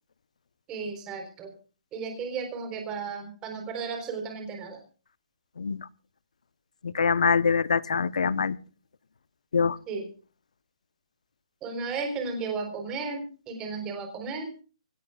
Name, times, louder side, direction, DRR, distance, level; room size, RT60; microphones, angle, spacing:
voice 1, 0.7-1.5 1.9-4.8 9.9-10.1 11.6-14.5, right 4 dB, 15° right, 5 dB, 4.0 m, -34 dB
voice 2, 5.6-5.9 6.8-8.6 9.5-9.8, left 5 dB, 80° left, 19 dB, 0.9 m, -24 dB
24.5 x 17.0 x 2.4 m, 0.35 s
hypercardioid pair, 165°, 4 cm